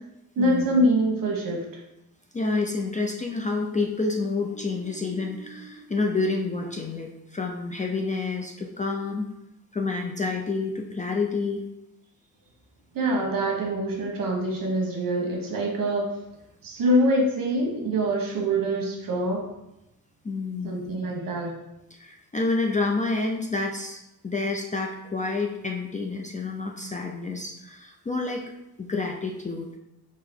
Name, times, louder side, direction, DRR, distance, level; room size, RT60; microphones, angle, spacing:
voice 1, 0.4-1.6 12.9-16.1 16.6-19.5 20.6-21.5, right 1 dB, 60° right, 0 dB, 1.3 m, -24 dB
voice 2, 2.3-9.3 9.7-11.6 20.2-21.0 21.9-24.0 24.2-28.5 28.8-29.7, left 3 dB, 20° left, 0 dB, 0.4 m, -28 dB
4.0 x 2.9 x 4.3 m, 0.90 s
cardioid pair, 115°, 39 cm